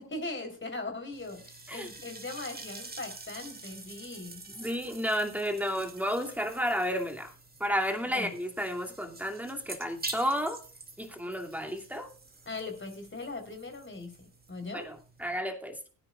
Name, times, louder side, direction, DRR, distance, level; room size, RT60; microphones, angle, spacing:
voice 1, 0.0-4.4 8.1-8.3 12.5-14.9, left 2 dB, 25° left, 5 dB, 3.8 m, -40 dB
sound 1, 1.1-15.4, right 3 dB, 20° right, 2.4 m, -47 dB
voice 2, 4.5-7.3 7.6-10.6 11.0-12.1 14.7-15.9, equal, 5° right, 4 dB, 2.5 m, -32 dB
21.0 x 9.8 x 2.4 m, 0.38 s
figure-of-eight pair, 40°, 46 cm